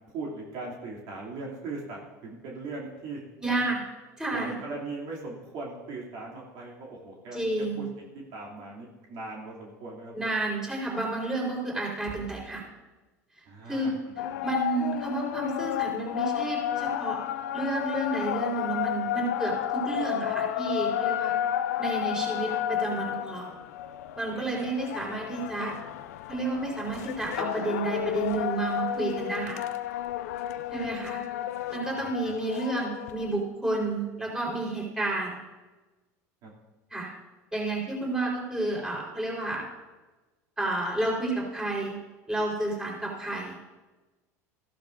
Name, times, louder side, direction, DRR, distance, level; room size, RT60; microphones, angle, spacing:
voice 1, 0.1-3.7 4.3-7.4 7.8-10.3 13.5-14.4 31.9-32.3 36.4-36.5, right 3 dB, 60° right, -3 dB, 2.8 m, -39 dB
voice 2, 3.4-3.8 4.2-4.5 7.3-7.9 10.1-12.6 13.7-14.0 14.4-17.2 17.5-21.3 21.8-23.6 24.2-25.8 26.3-29.6 30.7-31.2 31.7-35.4 36.9-37.1 37.5-39.7 40.6-42.0 42.3-43.6, right 2 dB, 5° right, -3 dB, 4.1 m, -31 dB
sound 1, 14.2-33.3, left 12 dB, 80° left, 0.5 m, -32 dB
15.0 x 12.0 x 2.6 m, 1.2 s
hypercardioid pair, 90°, 9 cm